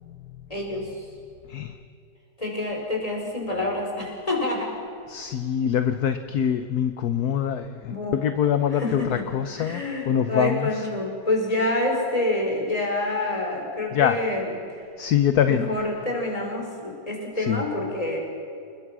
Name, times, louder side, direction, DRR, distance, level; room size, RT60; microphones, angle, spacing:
voice 1, 0.5-0.9 2.4-4.7 7.9-8.2 8.7-9.3 9.6-14.6 15.4-18.2, left 2 dB, 20° left, -1 dB, 5.4 m, -27 dB
voice 2, 5.1-9.0 9.3-10.7 13.9-14.2 15.0-15.7 17.5-17.6, left 9 dB, 65° left, 10 dB, 1.3 m, -24 dB
29.0 x 21.0 x 6.2 m, 2.5 s
omnidirectional pair, 2.0 m